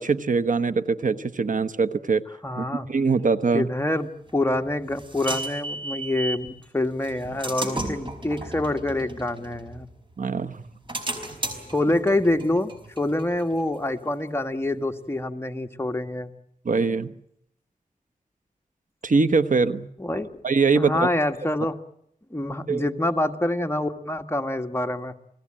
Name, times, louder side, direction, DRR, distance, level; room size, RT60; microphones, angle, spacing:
voice 1, 0.0-2.2 2.6-3.7 10.2-10.6 16.6-17.1 19.0-19.9 20.4-21.1 22.7-22.9, right 4 dB, 65° right, 10 dB, 1.1 m, -22 dB
voice 2, 2.4-2.9 3.5-9.9 11.7-12.7 13.0-16.3 20.0-20.3 20.8-21.7 22.3-25.1, left 1 dB, 15° left, 6 dB, 1.6 m, -26 dB
sound 1, 4.3-6.5 7.0-10.1 10.6-14.0, right 1 dB, 35° right, 5.0 m, -34 dB
29.0 x 19.0 x 8.8 m, 0.74 s
wide cardioid pair, 70°, 15 cm